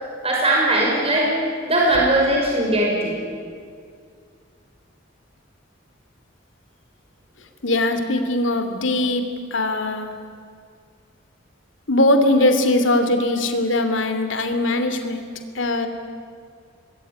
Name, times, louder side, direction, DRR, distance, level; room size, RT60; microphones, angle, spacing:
voice 1, 0.2-1.3 1.6-3.2, right 1 dB, 30° right, -2 dB, 5.9 m, -19 dB
voice 2, 7.6-10.1 11.9-15.2 15.5-15.9, left 1 dB, 65° left, 7 dB, 3.0 m, -20 dB
27.0 x 21.0 x 9.8 m, 2.2 s
head